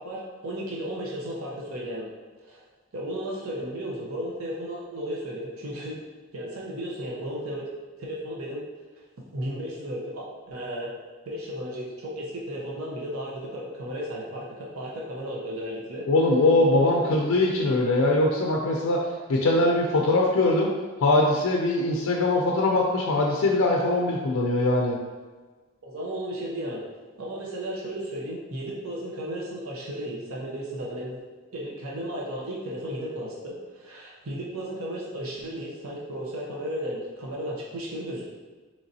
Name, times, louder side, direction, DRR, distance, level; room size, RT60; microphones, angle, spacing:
voice 1, 0.0-2.1 2.4-2.6 2.9-6.0 6.3-7.7 8.0-8.6 9.3-10.9 11.3-16.1 16.6-17.0 19.9-20.1 25.8-26.8 27.2-31.2 31.5-38.2, equal, 80° right, -4 dB, 0.7 m, -34 dB
voice 2, 16.1-20.7 21.0-25.0, left 2 dB, 80° left, -1 dB, 0.4 m, -22 dB
3.9 x 3.1 x 2.7 m, 1.3 s
head